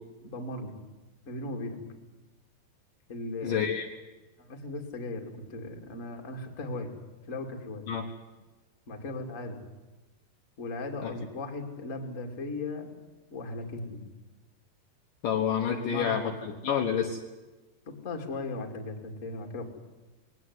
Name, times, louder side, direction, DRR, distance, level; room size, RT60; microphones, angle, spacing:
voice 1, 0.2-0.7 1.3-1.8 3.1-3.6 4.4-6.9 7.3-7.9 8.9-9.6 10.6-12.9 13.3-14.0 15.8-16.4 17.9-19.6, left 2 dB, 25° left, 3 dB, 2.1 m, -37 dB
voice 2, 3.4-3.9 7.9-8.1 11.0-11.1 15.2-16.3 16.6-17.2, left 8 dB, 65° left, 3 dB, 2.4 m, -28 dB
21.5 x 18.0 x 9.6 m, 1.2 s
omnidirectional pair, 5.2 m